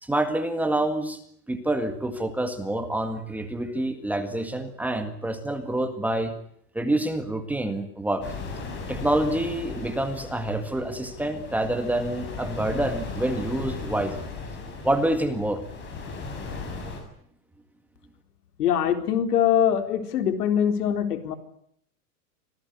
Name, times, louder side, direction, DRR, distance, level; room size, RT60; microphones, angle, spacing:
voice 1, 0.0-1.2 1.5-6.3 6.7-8.3 8.9-14.2 14.8-15.6, right 1 dB, 5° right, 7 dB, 1.8 m, -27 dB
sound 1, 8.2-17.0, left 4 dB, 25° left, 6.9 m, -37 dB
voice 2, 18.6-21.4, left 9 dB, 85° left, 7 dB, 4.2 m, -23 dB
26.0 x 17.5 x 9.6 m, 0.68 s
supercardioid pair, 160°, 45 cm